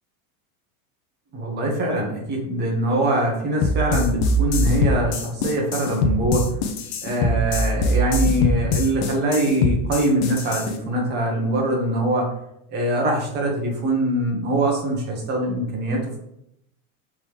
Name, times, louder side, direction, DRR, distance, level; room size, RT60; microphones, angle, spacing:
voice 1, 1.3-6.5 7.0-12.3 12.7-16.2, right 1 dB, 25° right, 0 dB, 0.9 m, -23 dB
sound 1, 3.6-10.7, left 1 dB, 50° left, 0.6 m, -22 dB
3.6 x 3.1 x 4.6 m, 0.77 s
supercardioid pair, 170°, 44 cm